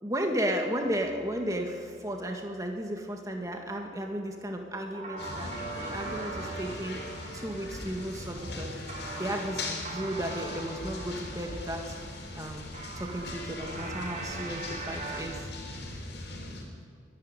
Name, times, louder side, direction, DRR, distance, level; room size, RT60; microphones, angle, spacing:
voice 1, 0.0-5.5 5.8-7.0 7.3-8.8 9.2-11.9 12.4-12.7 13.0-15.5, equal, 15° right, 3 dB, 2.1 m, -34 dB
sound 1, 0.8-15.2, right 2 dB, 40° right, 3.6 m, -42 dB
sound 2, 5.2-16.6, left 2 dB, 65° left, 4.8 m, -40 dB
23.5 x 12.0 x 9.2 m, 2.1 s
head